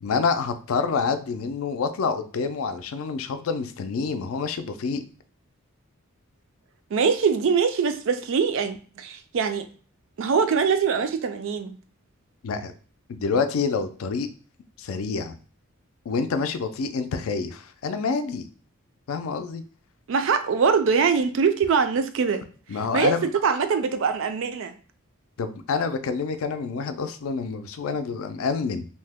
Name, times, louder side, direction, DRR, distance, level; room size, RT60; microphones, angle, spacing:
voice 1, 0.0-5.0 12.4-12.7 13.1-14.3 14.8-15.3 16.1-18.5 19.1-19.6 22.7-23.3 25.4-28.9, left 5 dB, 70° left, 9 dB, 0.4 m, -27 dB
voice 2, 6.9-9.7 10.2-11.8 20.1-22.5 22.9-23.2 23.4-24.7, right 5 dB, 60° right, 9 dB, 0.3 m, -23 dB
2.7 x 2.1 x 3.4 m, 0.40 s
head